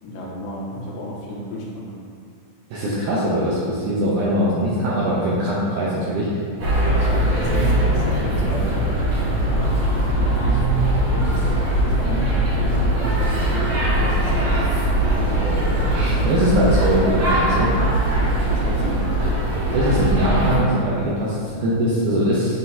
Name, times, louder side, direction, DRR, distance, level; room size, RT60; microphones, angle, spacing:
voice 1, 0.0-1.9 6.9-10.7 11.1-14.9 15.1-15.6 16.0-16.6 18.5-19.1, left 1 dB, 70° left, -3 dB, 2.3 m, -32 dB
voice 2, 2.7-6.3 15.9-17.7 19.7-22.6, equal, 80° right, -7 dB, 1.8 m, -21 dB
sound 1, 6.6-20.6, right 1 dB, 55° right, 1.4 m, -20 dB
9.3 x 3.8 x 2.7 m, 2.3 s
omnidirectional pair, 4.4 m